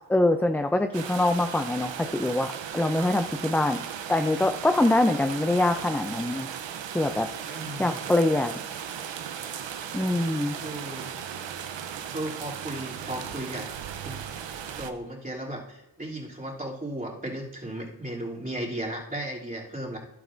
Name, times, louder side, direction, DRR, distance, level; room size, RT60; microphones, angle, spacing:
voice 1, 0.1-3.8 4.1-6.5 6.9-8.5 9.9-10.5, left 2 dB, 5° left, 6 dB, 0.5 m, -24 dB
sound 1, 0.9-14.9, right 8 dB, 80° right, 0.8 m, -37 dB
voice 2, 7.5-8.0 10.6-11.1 12.1-13.7 14.0-14.2 14.7-20.0, right 1 dB, 20° right, -4 dB, 2.9 m, -35 dB
11.0 x 9.6 x 2.6 m, 0.96 s
cardioid pair, 55°, 44 cm